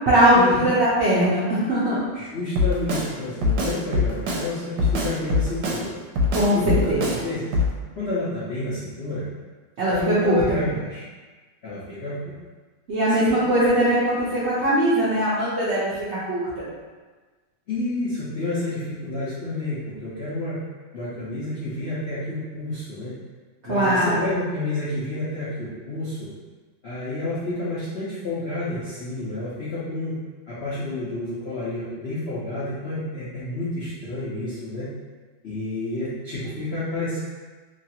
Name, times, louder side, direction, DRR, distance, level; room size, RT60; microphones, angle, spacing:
voice 1, 0.1-2.0 6.3-6.6 6.9-7.0 9.8-10.4 12.9-16.6 23.7-24.3, right 1 dB, 60° right, -10 dB, 0.7 m, -20 dB
voice 2, 2.1-5.9 6.5-7.4 8.0-9.2 9.9-11.0 11.6-12.3 13.1-13.7 17.7-20.6 20.9-23.1 23.7-26.3 26.8-30.2 30.5-34.9 35.4-37.2, left 2 dB, 60° left, -11 dB, 0.7 m, -29 dB
Drum kit, 2.6-3.1 3.4-4.5 4.8-5.8 6.2-7.2 7.5-7.7, left 3 dB, 75° right, 1.1 m, -22 dB
3.0 x 2.4 x 2.8 m, 1.3 s
omnidirectional pair, 1.8 m